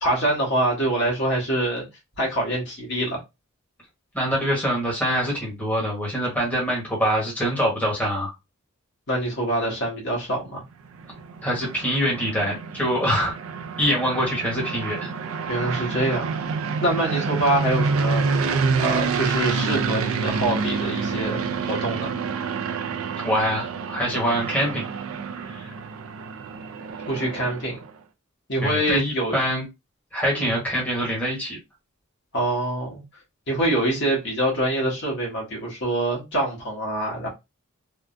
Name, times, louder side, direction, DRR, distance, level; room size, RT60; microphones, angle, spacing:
voice 1, 0.0-1.8 2.2-3.2 9.1-10.6 15.5-16.4 16.8-18.2 18.8-22.1 27.1-27.8 28.5-29.4 30.3-30.6 32.3-33.0 33.5-37.3, right 1 dB, 55° left, -2 dB, 1.4 m, -25 dB
voice 2, 4.1-8.3 11.4-13.4 13.8-15.1 23.2-24.8 25.4-25.7 28.6-29.6 30.1-31.6, equal, 5° left, -3 dB, 1.2 m, -24 dB
sound 1, 10.7-27.9, right 5 dB, 70° right, 0.4 m, -28 dB
3.6 x 2.2 x 2.5 m, 0.23 s
head